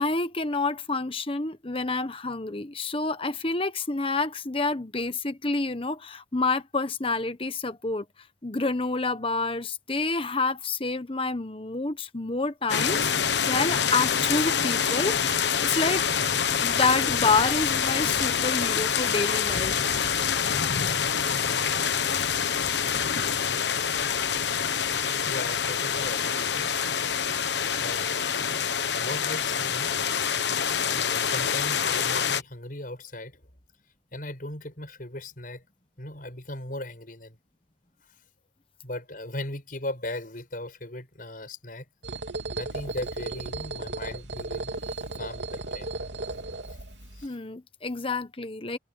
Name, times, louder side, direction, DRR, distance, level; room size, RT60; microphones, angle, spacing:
voice 1, 0.0-8.0 8.4-16.1 16.6-19.8 47.2-48.8, left 3 dB, 30° left, 1.2 m, -28 dB
sound 1, 12.7-32.4, left 7 dB, 75° left, 1.2 m, -26 dB
voice 2, 25.3-26.7 27.8-28.5 29.0-30.0 30.9-33.4 34.1-35.6 36.0-37.4 38.8-41.9 42.6-45.9 47.1-47.4, left 1 dB, 50° left, 7.2 m, -38 dB
sound 2, 42.0-47.3, right 2 dB, 80° right, 3.2 m, -35 dB
head